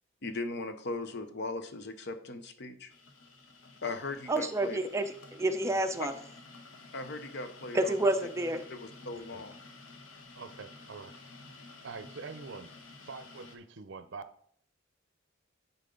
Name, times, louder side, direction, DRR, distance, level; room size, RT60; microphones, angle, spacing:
voice 1, 0.2-2.9 3.8-4.8 6.0-6.1 6.9-7.9 8.7-9.6, left 3 dB, 55° left, 0.8 m, -38 dB
sound 1, 2.9-13.6, left 3 dB, 90° left, 1.1 m, -52 dB
voice 2, 4.3-5.0 5.3-6.1 7.7-8.6, right 1 dB, 15° right, 0.6 m, -29 dB
voice 3, 10.4-11.2 11.5-12.7 13.0-14.2, right 4 dB, 65° right, 0.6 m, -45 dB
10.0 x 4.5 x 3.8 m
head